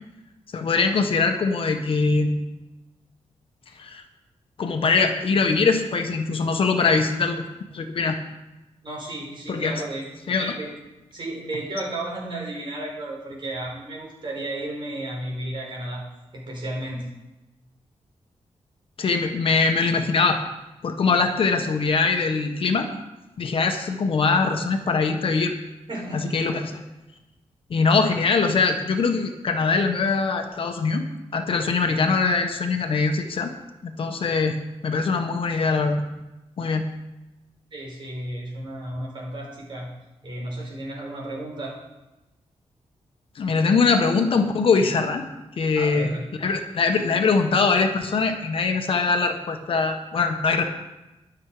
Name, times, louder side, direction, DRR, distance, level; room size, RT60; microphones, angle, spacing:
voice 1, 0.5-2.4 3.8-4.0 4.6-7.5 7.7-8.2 9.5-9.8 10.3-10.5 19.0-20.4 20.8-22.9 23.4-25.5 26.1-26.7 27.7-31.0 31.3-33.5 33.8-34.5 34.8-36.0 36.6-36.9 43.3-45.2 45.6-46.1 46.4-50.7, left 4 dB, 55° left, 5 dB, 1.4 m, -22 dB
voice 2, 8.8-10.0 10.4-10.7 11.1-16.0 16.3-17.1 25.9-26.2 37.7-39.9 40.2-41.7 45.7-46.2, right 1 dB, 45° right, -1 dB, 4.9 m, -33 dB
22.0 x 7.6 x 5.0 m, 1.0 s
wide cardioid pair, 180°, 11 cm